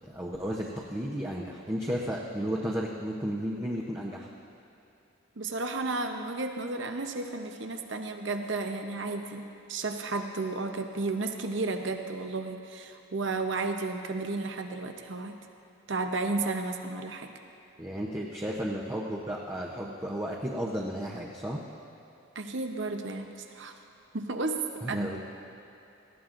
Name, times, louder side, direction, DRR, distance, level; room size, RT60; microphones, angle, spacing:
voice 1, 0.1-4.3 17.8-21.6 24.8-25.2, equal, 15° right, -4 dB, 0.7 m, -33 dB
voice 2, 5.4-15.4 15.9-17.3 22.3-23.7 24.1-25.2, right 3 dB, 60° right, 5 dB, 0.8 m, -33 dB
18.5 x 14.5 x 2.6 m, 2.9 s
head